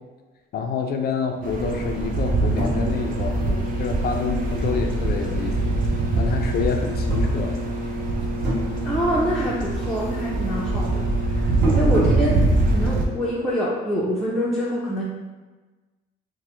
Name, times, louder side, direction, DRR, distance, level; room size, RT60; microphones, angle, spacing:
voice 1, 0.5-5.7 6.2-7.6, left 5 dB, 50° left, 4 dB, 0.4 m, -28 dB
sound 1, 1.4-13.1, right 2 dB, 45° right, 0.5 m, -23 dB
sound 2, 2.6-5.4 5.8-6.6 7.0-8.0 8.2-9.5 9.8-12.3, right 2 dB, 60° right, 1.1 m, -31 dB
voice 2, 8.8-12.4 12.7-15.0, equal, ahead, -7 dB, 0.5 m, -25 dB
3.1 x 2.1 x 3.0 m, 1.2 s
cardioid pair, 90°, 21 cm